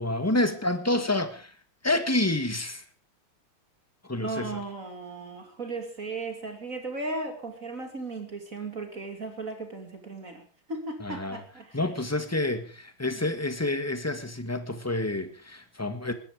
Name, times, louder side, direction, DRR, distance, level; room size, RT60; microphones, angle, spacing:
voice 1, 0.0-1.5 1.8-2.8 4.1-4.5 11.0-11.4 11.7-16.1, left 2 dB, 10° left, 1.5 m, -28 dB
voice 2, 4.2-10.4 10.7-11.8 13.1-13.2, right 3 dB, 40° right, 3.0 m, -36 dB
20.5 x 14.0 x 5.0 m
omnidirectional pair, 2.4 m